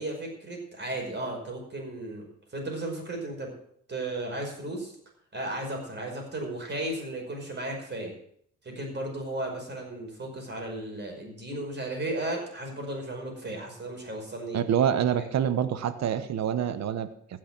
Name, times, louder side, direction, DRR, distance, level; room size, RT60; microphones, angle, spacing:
voice 1, 0.0-3.5 3.9-4.9 5.3-8.1 8.6-14.6 15.2-15.3, right 1 dB, 35° right, 1 dB, 5.4 m, -35 dB
voice 2, 14.5-17.1, right 9 dB, 60° right, 11 dB, 1.1 m, -26 dB
15.5 x 6.5 x 7.4 m, 0.67 s
cardioid pair, 90°, 30 cm